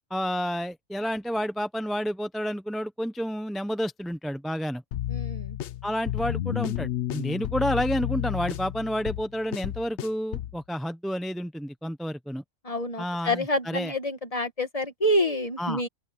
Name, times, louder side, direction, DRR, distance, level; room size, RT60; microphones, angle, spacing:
voice 1, 0.0-4.8 5.8-12.4 13.0-13.9 15.6-15.8, equal, ahead, 0.6 m, -30 dB
sound 1, 4.9-10.6, left 12 dB, 65° left, 0.9 m, -31 dB
voice 2, 5.1-5.6 12.6-15.9, left 1 dB, 25° left, 2.0 m, -27 dB
open air
omnidirectional pair, 1.3 m